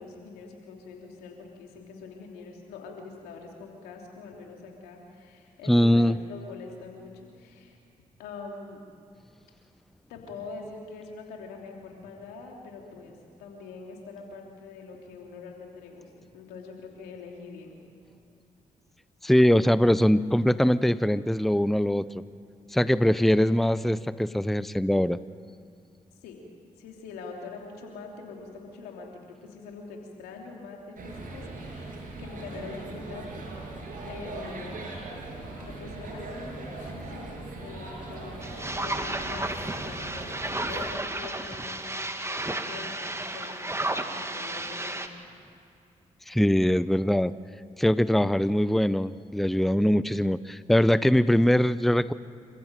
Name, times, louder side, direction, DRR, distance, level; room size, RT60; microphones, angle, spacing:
voice 1, 0.0-7.8 8.2-8.8 10.1-17.8 26.2-26.4 26.8-33.7 34.1-34.9 35.6-38.4 38.7-45.2, left 4 dB, 90° left, 1 dB, 3.2 m, -44 dB
voice 2, 5.7-6.2 19.2-22.1 22.7-25.2 46.3-47.3 47.8-52.1, equal, ahead, 16 dB, 0.7 m, -22 dB
sound 1, 31.0-40.9, right 2 dB, 60° right, 6.9 m, -39 dB
sound 2, 38.4-45.1, right 1 dB, 15° right, 2.2 m, -33 dB
27.5 x 15.5 x 9.1 m, 2.4 s
hypercardioid pair, 45°, 16 cm